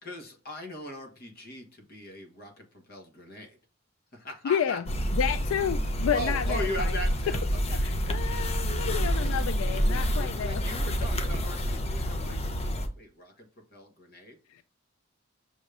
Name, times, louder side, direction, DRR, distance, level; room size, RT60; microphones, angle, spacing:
voice 1, 0.0-3.6 4.1-4.8 6.1-7.9 8.8-9.3 9.9-12.4 12.9-14.4, equal, 50° left, 1.3 m, -40 dB
voice 2, 4.4-4.8 5.1-6.9 7.8-10.6 14.5-14.6, left 8 dB, 85° left, 0.3 m, -30 dB
sound 1, 4.9-12.9, equal, 30° left, 0.6 m, -28 dB
6.1 x 3.3 x 2.5 m
head